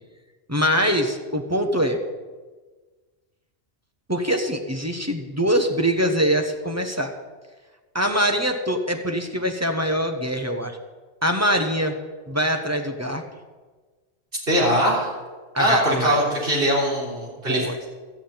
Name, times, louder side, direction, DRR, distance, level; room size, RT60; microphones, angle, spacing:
voice 1, 0.5-2.0 4.1-7.1 7.9-10.8 11.2-12.0 12.3-13.2 15.5-16.2 17.5-17.8, equal, 15° right, 4 dB, 1.0 m, -23 dB
voice 2, 14.5-15.1 15.6-17.6, equal, 55° right, -5 dB, 4.1 m, -21 dB
13.5 x 6.1 x 8.7 m, 1.4 s
omnidirectional pair, 1.2 m